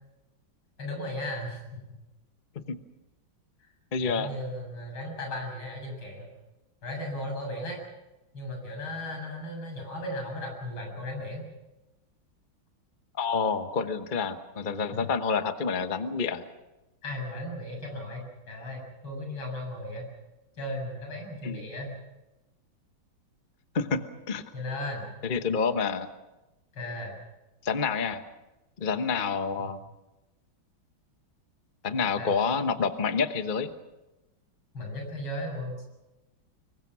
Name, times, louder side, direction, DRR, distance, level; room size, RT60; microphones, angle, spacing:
voice 1, 0.8-1.8 4.0-6.3 6.8-7.8 8.3-11.5 14.9-15.1 17.0-20.1 20.6-22.0 24.5-25.1 26.7-27.2 29.6-29.7 32.2-32.4 34.7-35.9, left 1 dB, 80° left, 1 dB, 8.3 m, -36 dB
voice 2, 3.9-4.3 13.1-16.4 21.4-21.6 23.7-24.4 25.2-26.1 27.6-28.2 28.8-29.8 31.8-33.7, left 5 dB, 30° left, 9 dB, 1.0 m, -28 dB
25.5 x 23.0 x 6.2 m, 1.0 s
omnidirectional pair, 2.3 m